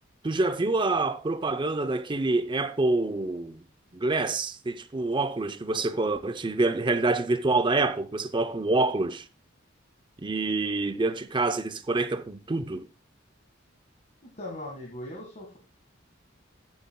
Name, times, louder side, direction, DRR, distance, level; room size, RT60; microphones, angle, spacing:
voice 1, 0.2-3.6 3.9-9.2 10.2-12.9, right 3 dB, 25° right, 0.5 m, -27 dB
voice 2, 14.2-15.6, left 1 dB, 35° left, 1.7 m, -39 dB
13.5 x 8.3 x 2.2 m
head